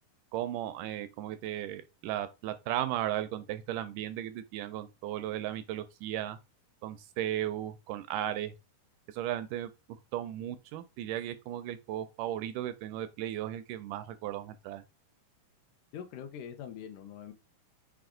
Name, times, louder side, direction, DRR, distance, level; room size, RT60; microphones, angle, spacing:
voice 1, 0.3-6.4 6.8-8.6 9.1-9.7 10.1-14.8, right 12 dB, 80° right, 2.0 m, -35 dB
voice 2, 15.9-17.3, left 8 dB, 80° left, 2.1 m, -43 dB
5.9 x 2.3 x 3.7 m
omnidirectional pair, 3.8 m